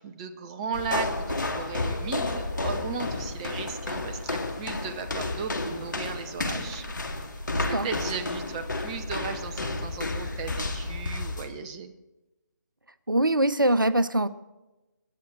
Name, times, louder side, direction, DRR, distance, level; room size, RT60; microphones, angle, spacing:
voice 1, 0.0-6.8 7.5-11.9, right 6 dB, 20° right, 9 dB, 0.7 m, -36 dB
sound 1, 0.7-11.5, left 2 dB, 70° left, 2.2 m, -31 dB
voice 2, 13.1-14.3, right 1 dB, 85° right, 15 dB, 0.9 m, -22 dB
22.5 x 10.5 x 3.9 m, 1.0 s
figure-of-eight pair, 150°, 11 cm